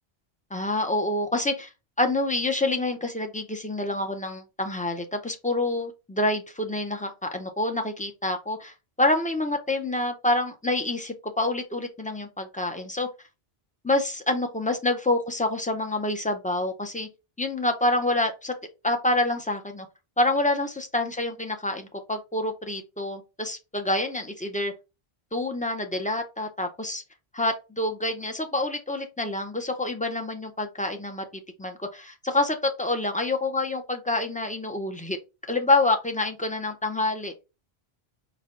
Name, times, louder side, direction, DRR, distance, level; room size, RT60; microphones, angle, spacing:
voice 1, 0.5-1.7 2.0-13.1 13.8-17.1 17.4-18.5 18.8-19.9 20.2-24.7 25.3-27.0 27.3-31.2 31.6-35.2 35.5-37.3, left 2 dB, 10° left, 0.4 m, -27 dB
5.0 x 2.2 x 3.6 m
omnidirectional pair, 1.0 m